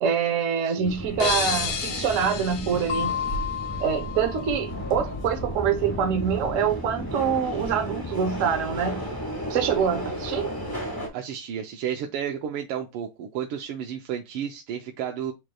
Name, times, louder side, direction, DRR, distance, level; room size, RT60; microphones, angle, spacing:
voice 1, 0.0-3.1 3.8-9.0 9.5-10.5, right 7 dB, 65° right, 0.7 m, -25 dB
voice 2, 0.6-1.0 11.1-15.3, right 9 dB, 90° right, 1.5 m, -32 dB
Subway metro underground, 0.8-11.1, equal, 15° left, 0.7 m, -33 dB
sound 1, 1.2-4.0, left 6 dB, 75° left, 0.8 m, -31 dB
sound 2, 2.9-5.4, left 8 dB, 40° left, 1.1 m, -33 dB
7.8 x 2.9 x 2.3 m
omnidirectional pair, 2.4 m